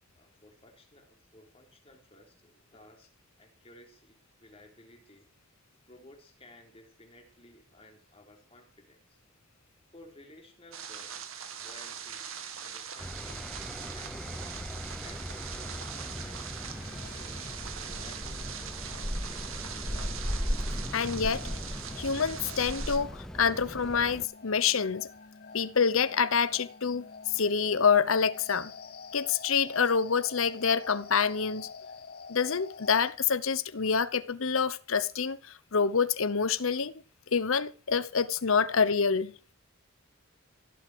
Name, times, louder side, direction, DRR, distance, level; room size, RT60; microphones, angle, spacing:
voice 1, 0.2-3.1 3.4-5.3 5.8-9.2 9.9-11.3 11.6-13.5 13.8-14.4 15.0-16.6 17.1-20.0, left 1 dB, 25° left, 3.7 m, -56 dB
sound 1, 10.7-23.0, right 8 dB, 75° right, 2.3 m, -42 dB
sound 2, 13.0-24.2, equal, ahead, 0.8 m, -37 dB
sound 3, 16.6-33.1, left 4 dB, 45° left, 0.8 m, -48 dB
voice 2, 20.9-21.4 22.0-25.1 25.5-28.7 29.1-31.7 32.3-35.4 35.7-36.9 37.3-39.3, left 6 dB, 70° left, 0.9 m, -27 dB
16.5 x 7.7 x 7.9 m
head